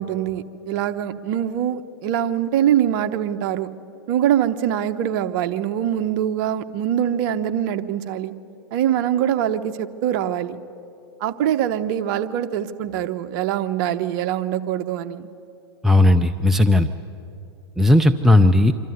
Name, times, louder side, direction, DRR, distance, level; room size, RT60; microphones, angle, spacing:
voice 1, 0.0-3.7 4.1-8.3 8.7-10.6 11.2-15.3, right 10 dB, 50° right, 9 dB, 1.0 m, -23 dB
voice 2, 15.8-16.9 17.8-18.7, left 1 dB, ahead, 8 dB, 0.5 m, -15 dB
26.0 x 12.5 x 9.5 m, 2.7 s
hypercardioid pair, 115°, 13 cm